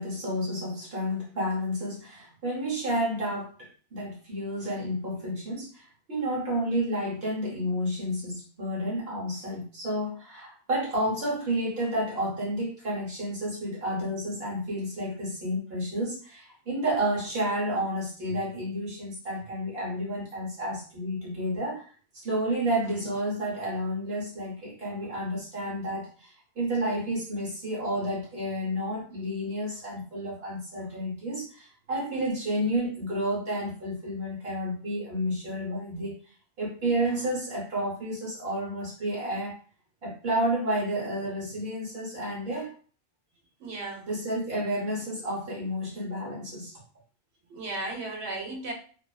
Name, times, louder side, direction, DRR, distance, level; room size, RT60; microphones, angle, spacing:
voice 1, 0.0-21.9 22.1-36.2 36.6-39.6 40.0-42.7 44.1-46.7, equal, 65° right, -5 dB, 1.0 m, -31 dB
voice 2, 43.6-44.1 47.5-48.7, right 2 dB, 90° right, 1 dB, 1.0 m, -35 dB
2.4 x 2.3 x 2.3 m, 0.41 s
omnidirectional pair, 1.1 m